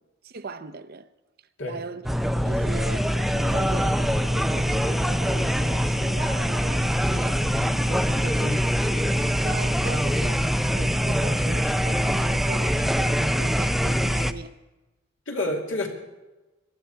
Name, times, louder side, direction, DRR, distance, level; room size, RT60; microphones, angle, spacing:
voice 1, 0.2-1.1 1.7-2.0 2.5-7.4 7.9-14.5, right 4 dB, 50° right, 0.7 m, -39 dB
sound 1, 2.0-14.3, equal, ahead, 0.4 m, -23 dB
voice 2, 15.3-15.9, left 1 dB, 70° left, 2.6 m, -31 dB
19.0 x 12.5 x 4.6 m
head